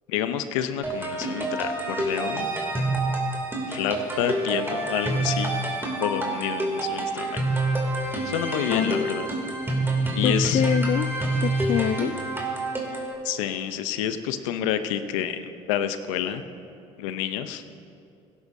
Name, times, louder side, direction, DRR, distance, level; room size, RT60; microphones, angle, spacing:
voice 1, 0.1-2.5 3.7-5.6 6.0-7.5 8.2-9.3 10.1-10.6 13.2-16.4 17.0-17.6, left 9 dB, 85° left, 10 dB, 0.7 m, -28 dB
sound 1, 0.8-13.1, right 2 dB, 15° right, 2.7 m, -27 dB
voice 2, 8.7-9.1 10.2-11.1 11.4-12.1, left 10 dB, 45° left, 9 dB, 0.4 m, -25 dB
16.5 x 11.0 x 2.7 m, 2.5 s
supercardioid pair, 75°, 16 cm